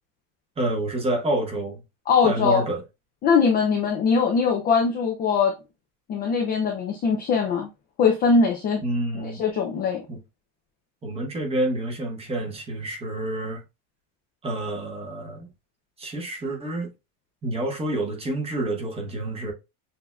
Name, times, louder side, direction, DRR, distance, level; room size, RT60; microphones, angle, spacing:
voice 1, 0.6-1.8 2.2-2.8 8.8-9.4 10.1-10.2 11.0-13.6 14.4-15.5 16.0-16.9 17.4-19.5, right 1 dB, 10° right, 1.1 m, -28 dB
voice 2, 2.1-2.6 3.2-5.5 6.1-7.7 8.0-8.8 9.1-10.0, left 5 dB, 20° left, 0.5 m, -21 dB
6.9 x 2.7 x 2.2 m
supercardioid pair, 170°, 47 cm